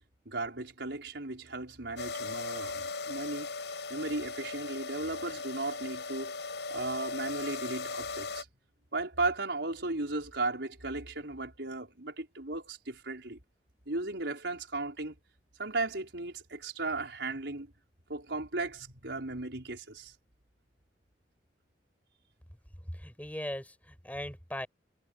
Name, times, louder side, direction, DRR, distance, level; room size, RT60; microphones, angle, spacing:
voice 1, 0.2-3.5 3.9-6.4 6.7-8.5 8.9-13.4 13.9-15.1 15.6-17.7 18.1-20.1, right 2 dB, 90° right, 4.7 m, -36 dB
sound 1, 2.0-8.4, left 3 dB, 75° left, 7.3 m, -38 dB
voice 2, 22.9-24.7, left 1 dB, 10° left, 7.4 m, -39 dB
head